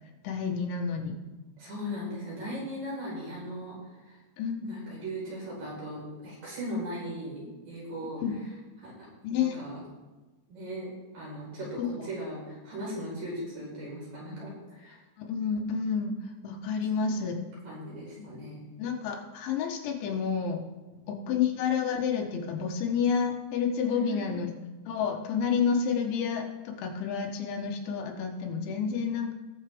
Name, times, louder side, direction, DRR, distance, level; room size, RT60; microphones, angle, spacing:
voice 1, 0.2-1.2 4.4-4.8 8.2-8.3 9.2-9.6 11.8-12.1 15.2-16.1 16.4-17.4 18.8-20.6 21.1-24.5 24.9-29.3, left 6 dB, 80° left, 2 dB, 3.5 m, -29 dB
voice 2, 1.6-4.2 4.6-8.2 8.8-8.9 9.3-9.8 10.5-10.9 11.1-15.0 17.0-17.3 17.6-18.6 23.9-24.3, equal, 50° right, -7 dB, 5.9 m, -38 dB
19.5 x 7.2 x 3.5 m, 1.2 s
omnidirectional pair, 5.3 m